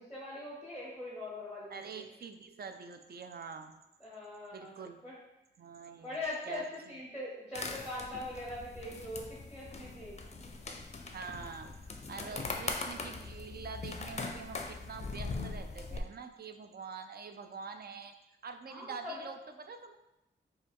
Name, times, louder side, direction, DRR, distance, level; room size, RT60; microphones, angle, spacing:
voice 1, 0.0-2.0 4.0-5.1 6.0-10.2 18.7-19.3, left 2 dB, 5° right, -5 dB, 0.9 m, -42 dB
voice 2, 1.7-3.8 4.5-5.0 5.6-6.2 6.5-7.0 11.1-11.7 12.1-18.2 18.4-20.0, right 5 dB, 55° right, 7 dB, 0.4 m, -45 dB
sound 1, 7.5-16.0, left 3 dB, 35° left, 0.5 m, -41 dB
5.1 x 2.3 x 3.5 m, 0.91 s
wide cardioid pair, 100°, 19 cm